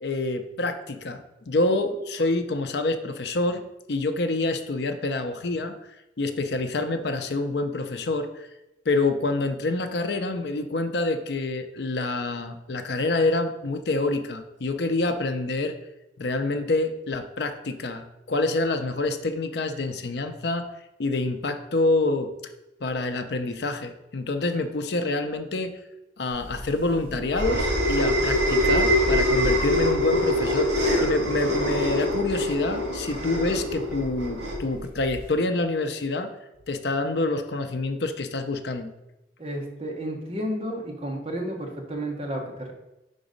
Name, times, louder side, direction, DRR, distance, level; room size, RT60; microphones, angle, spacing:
voice 1, 0.0-3.6 3.9-5.7 6.2-8.5 8.9-15.8 16.2-20.7 21.0-22.3 22.8-25.8 26.2-36.3 36.7-38.9, left 2 dB, 65° left, 8 dB, 0.5 m, -27 dB
sound 1, 26.5-35.3, equal, 75° right, 1.7 m, -24 dB
voice 2, 39.4-42.7, right 1 dB, 30° right, 0 dB, 1.0 m, -32 dB
5.2 x 4.0 x 5.1 m, 0.95 s
head